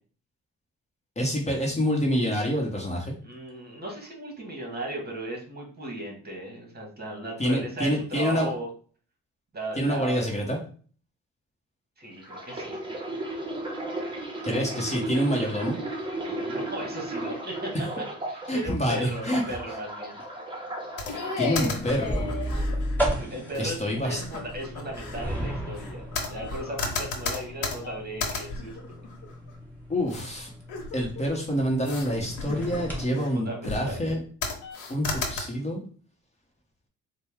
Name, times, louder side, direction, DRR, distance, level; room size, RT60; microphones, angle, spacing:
voice 1, 1.2-3.1 7.4-8.5 9.8-10.6 14.4-15.8 18.5-19.4 21.4-22.3 23.6-24.2 29.9-30.5 30.9-34.2 34.9-35.8, equal, 20° left, -1 dB, 1.1 m, -27 dB
voice 2, 3.2-8.7 9.5-10.3 12.0-12.8 16.2-17.7 18.0-20.2 23.2-29.0 33.1-34.0, right 1 dB, 30° right, 0 dB, 1.5 m, -37 dB
sound 1, 12.2-18.7 19.1-21.5 22.2-22.4, right 1 dB, 15° right, 1.1 m, -35 dB
sound 2, 21.0-23.0 23.5-23.7 24.1-25.2 25.8-29.6 30.1-30.3 30.7-31.3 31.8-32.1 32.4-33.3 33.6-34.1 34.4-35.4, left 4 dB, 85° left, 1.0 m, -33 dB
sound 3, 21.9-33.1, equal, 5° left, 1.5 m, -34 dB
4.2 x 2.3 x 3.5 m, 0.43 s
cardioid pair, 90°, 30 cm